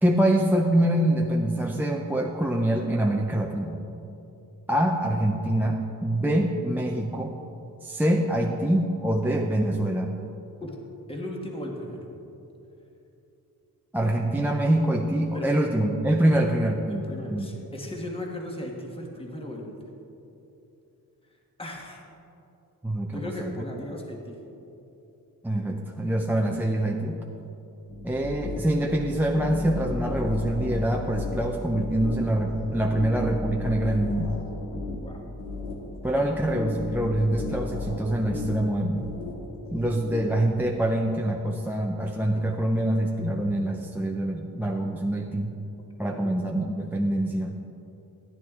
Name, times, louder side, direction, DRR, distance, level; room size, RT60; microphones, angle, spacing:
voice 1, 0.0-3.8 4.7-7.3 7.8-10.1 13.9-17.0 17.3-17.5 22.8-23.6 25.4-27.2 28.0-34.4 36.0-39.1 39.7-45.5 46.0-47.5, right 1 dB, 5° right, 0 dB, 0.6 m, -25 dB
voice 2, 11.1-12.0 15.3-15.6 16.2-16.4 16.9-19.8 21.6-22.0 23.1-24.4 35.0-35.2 46.0-46.3, left 1 dB, 15° left, 0 dB, 1.4 m, -36 dB
sound 1, 27.9-40.2, left 3 dB, 65° left, 2.0 m, -35 dB
15.0 x 10.5 x 3.7 m, 2.9 s
wide cardioid pair, 120°, 36 cm